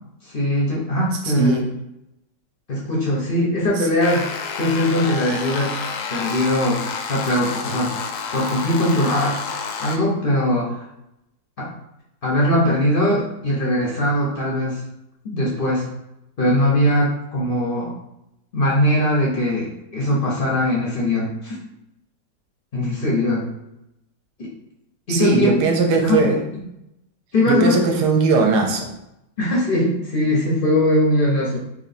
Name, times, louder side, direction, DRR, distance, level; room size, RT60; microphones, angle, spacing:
voice 1, 0.2-1.6 2.7-4.2 4.6-5.7 6.1-7.9 8.3-9.4 9.8-10.8 11.6-11.7 12.2-14.8 15.3-15.8 16.4-18.0 18.5-21.6 22.7-23.4 24.4-24.5 25.1-25.5 26.0-26.2 27.3-27.8 29.4-31.6, left 1 dB, 50° left, -4 dB, 0.7 m, -20 dB
sound 1, 4.0-10.0, left 5 dB, 75° left, 1.0 m, -29 dB
voice 2, 25.1-26.4 27.5-28.9, right 4 dB, 75° right, 3 dB, 1.1 m, -19 dB
3.1 x 2.9 x 4.1 m, 0.85 s
omnidirectional pair, 1.9 m